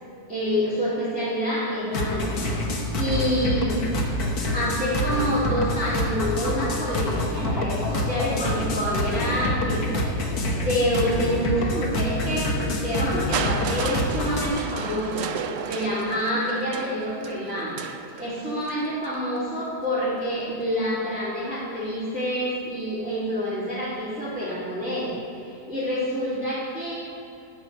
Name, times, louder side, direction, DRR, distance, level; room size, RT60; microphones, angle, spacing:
voice 1, 0.3-2.3 3.0-3.8 4.5-10.0 10.5-17.8 18.2-25.1 25.4-26.9, equal, 5° right, -10 dB, 2.6 m, -27 dB
sound 1, 1.9-14.5, left 1 dB, 70° left, 1.7 m, -26 dB
Crushing, 13.3-19.2 20.2-20.3, right 6 dB, 70° right, 0.6 m, -33 dB
12.0 x 4.8 x 7.7 m, 2.8 s
omnidirectional pair, 1.7 m